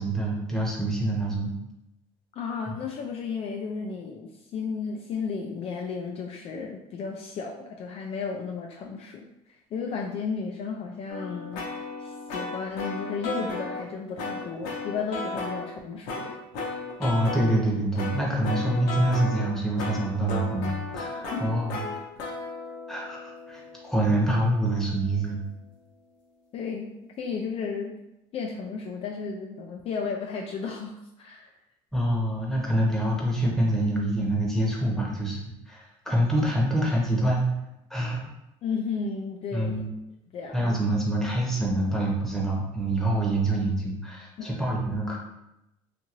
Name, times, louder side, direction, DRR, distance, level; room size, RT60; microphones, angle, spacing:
voice 1, 0.0-1.5 17.0-21.8 22.9-23.6 23.9-25.4 31.9-35.4 35.7-37.5 37.9-38.3 39.5-39.9 40.5-45.2, right 1 dB, 5° left, -3 dB, 0.9 m, -26 dB
voice 2, 2.3-16.3 21.3-21.5 26.5-26.9 27.2-27.9 28.3-31.5 38.6-39.8 40.3-40.8 44.4-44.6, left 5 dB, 50° left, 1 dB, 0.4 m, -34 dB
sound 1, 11.1-13.9 14.2-15.7 16.1-17.5 18.0-25.0, left 2 dB, 90° left, 0.6 m, -35 dB
2.6 x 2.5 x 2.9 m, 0.88 s
supercardioid pair, 95°, 13 cm